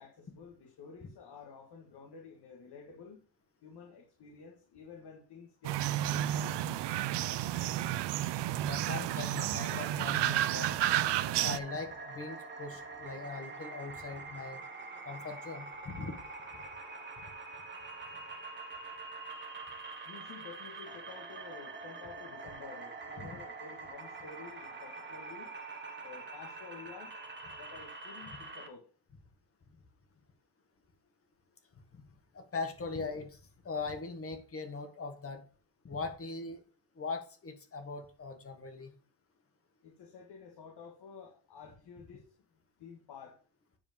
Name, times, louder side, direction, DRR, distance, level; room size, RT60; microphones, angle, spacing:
voice 1, 0.0-3.2 3.6-6.4 20.1-25.5 26.0-27.1 27.6-28.8 39.8-42.2 42.8-43.3, left 5 dB, 70° left, 1 dB, 2.1 m, -51 dB
sound 1, 5.6-11.6, right 13 dB, 90° right, 0.6 m, -31 dB
voice 2, 8.6-10.8 11.4-14.6 15.0-16.1 16.8-17.0 23.2-23.4 31.9-32.0 32.3-33.4 33.6-35.4 35.8-36.6 36.9-38.9, left 4 dB, 35° left, 6 dB, 1.7 m, -40 dB
sound 2, 9.9-28.7, right 3 dB, 25° right, 1.4 m, -45 dB
9.8 x 4.8 x 5.3 m, 0.38 s
wide cardioid pair, 175°, 40 cm